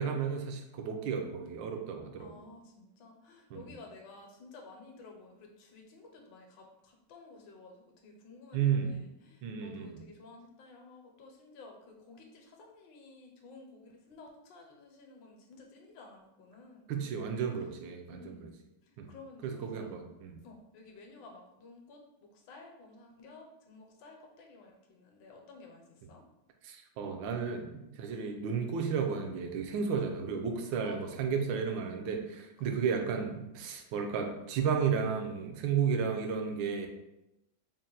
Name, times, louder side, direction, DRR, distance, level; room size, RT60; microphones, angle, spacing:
voice 1, 0.0-2.3 3.5-3.7 8.5-8.9 9.4-9.9 16.9-18.5 19.0-19.1 19.4-20.4 26.6-36.9, right 6 dB, 80° right, 4 dB, 1.3 m, -33 dB
voice 2, 2.2-16.9 17.5-17.7 18.1-18.5 18.8-19.9 20.4-26.2 30.8-31.3 32.6-32.9, left 3 dB, 70° left, 2 dB, 1.3 m, -53 dB
4.1 x 2.1 x 3.8 m, 0.91 s
omnidirectional pair, 2.1 m